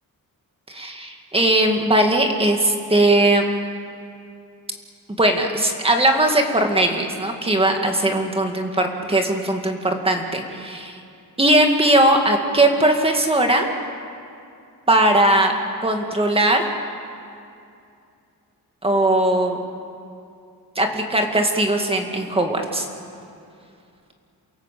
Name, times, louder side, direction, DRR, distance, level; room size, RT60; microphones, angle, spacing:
voice 1, 0.7-3.4 5.2-11.0 11.4-13.7 14.9-15.5 15.8-16.6 18.8-19.6 20.8-22.9, right 1 dB, 15° right, 3 dB, 2.1 m, -19 dB
28.5 x 17.5 x 7.7 m, 2.5 s
wide cardioid pair, 160°, 36 cm